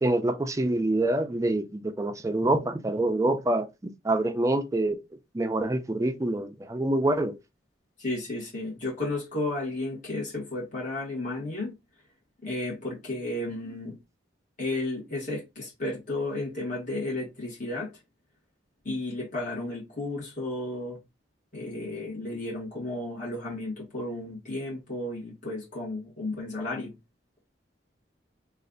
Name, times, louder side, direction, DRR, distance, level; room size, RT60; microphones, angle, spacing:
voice 1, 0.0-5.0 5.3-7.4, right 2 dB, 20° right, 0.4 m, -26 dB
voice 2, 8.0-11.7 12.4-14.0 14.6-17.9 18.8-21.0 21.5-26.9, left 2 dB, 45° left, 1.5 m, -33 dB
3.2 x 2.4 x 3.7 m
head